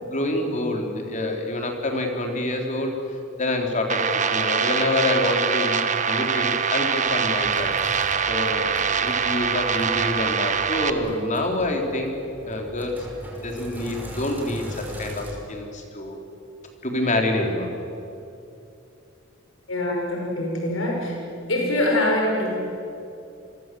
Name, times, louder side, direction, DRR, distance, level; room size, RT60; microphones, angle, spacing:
voice 1, 0.0-3.0 3.4-7.7 8.3-12.1 12.4-13.0 13.4-16.2 16.8-17.7, left 2 dB, 40° left, 3 dB, 4.0 m, -27 dB
sound 1, 3.9-10.9, right 6 dB, 40° right, 1.4 m, -24 dB
Sink (filling or washing), 6.5-15.3, equal, 10° right, 5.4 m, -40 dB
voice 2, 19.7-21.2 21.5-22.6, left 1 dB, 85° left, 0 dB, 5.6 m, -24 dB
29.5 x 24.0 x 7.9 m, 2.8 s
head